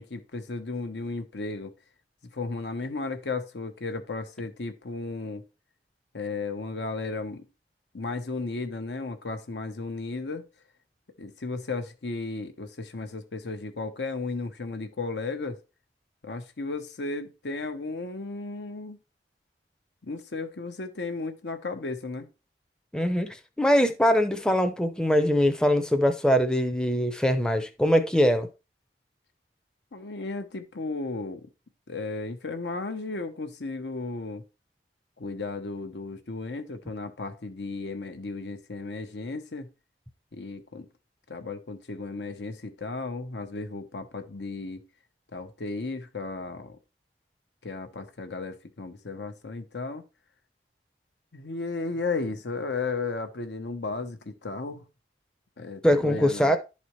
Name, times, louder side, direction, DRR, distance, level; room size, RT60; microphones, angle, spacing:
voice 1, 0.0-1.7 2.3-5.4 6.1-7.5 7.9-10.5 11.2-15.6 16.2-19.0 20.0-22.3 29.9-31.5 31.9-34.4 35.2-39.7 40.3-40.9 41.3-44.8 45.3-46.8 47.6-50.0 51.3-54.9 55.6-56.6, left 3 dB, 80° left, 0.9 m, -34 dB
voice 2, 22.9-28.5 55.8-56.6, equal, 5° left, 0.5 m, -22 dB
11.0 x 4.2 x 3.1 m
head